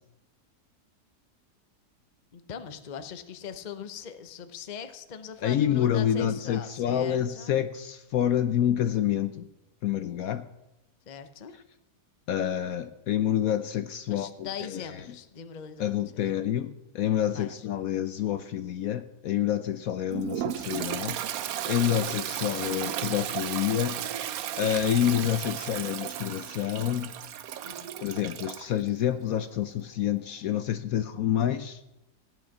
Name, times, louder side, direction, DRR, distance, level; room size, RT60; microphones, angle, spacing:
voice 1, 2.3-7.6 11.1-11.5 14.1-16.3 17.3-17.7 27.6-27.9, left 7 dB, 35° left, 0.7 m, -41 dB
voice 2, 5.4-9.4 9.8-10.5 12.3-14.8 15.8-24.3 24.6-27.1 28.0-31.8, left 10 dB, 70° left, 1.0 m, -28 dB
Toilet flush, 20.1-28.7, right 10 dB, 65° right, 1.1 m, -34 dB
15.5 x 9.3 x 5.9 m
omnidirectional pair, 1.8 m